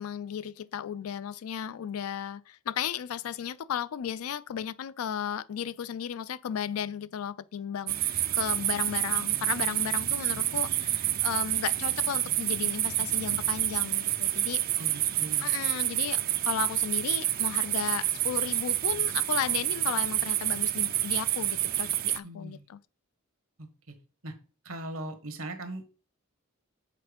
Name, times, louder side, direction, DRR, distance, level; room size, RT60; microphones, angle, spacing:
voice 1, 0.0-14.6 15.4-22.8, left 8 dB, 80° left, 0.4 m, -35 dB
sound 1, 7.9-22.2, right 13 dB, 45° right, 0.4 m, -28 dB
voice 2, 14.8-15.5 22.2-22.6 23.6-23.9 24.2-24.3 24.6-25.9, right 1 dB, 70° right, 1.3 m, -40 dB
6.7 x 4.3 x 5.1 m
head